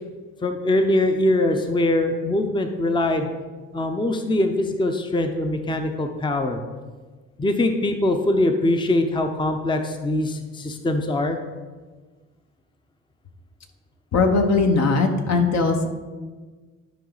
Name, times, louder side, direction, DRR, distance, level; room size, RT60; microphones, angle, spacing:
voice 1, 0.4-3.3 3.7-6.6 7.4-11.4, left 1 dB, 15° left, 6 dB, 0.7 m, -22 dB
voice 2, 14.1-15.9, left 4 dB, 60° left, 4 dB, 1.2 m, -19 dB
11.5 x 4.7 x 4.0 m, 1.4 s
cardioid pair, 90°, 30 cm